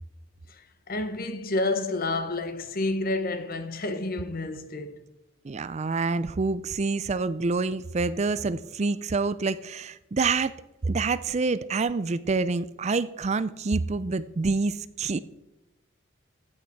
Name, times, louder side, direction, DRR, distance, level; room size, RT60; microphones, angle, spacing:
voice 1, 0.5-5.0, left 2 dB, 45° left, 1.1 m, -30 dB
voice 2, 5.4-10.5 10.8-15.2, right 4 dB, 35° right, 0.4 m, -27 dB
15.0 x 8.7 x 4.6 m
head